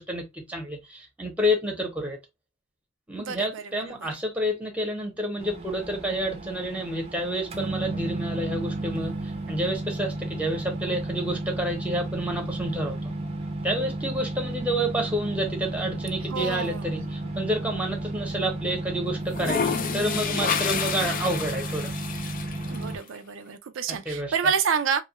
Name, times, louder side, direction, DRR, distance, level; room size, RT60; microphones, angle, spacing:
voice 1, 0.0-2.2 3.1-9.2 9.5-13.0 13.6-21.9 24.1-24.5, equal, 5° right, 0.9 m, -29 dB
voice 2, 3.2-3.9 16.3-17.0 22.7-25.0, right 6 dB, 80° right, 0.4 m, -28 dB
sound 1, 5.4-23.0, right 2 dB, 30° right, 0.6 m, -33 dB
sound 2, 17.0-17.8 19.2-22.9, left 6 dB, 45° left, 0.4 m, -29 dB
2.8 x 2.4 x 2.8 m
head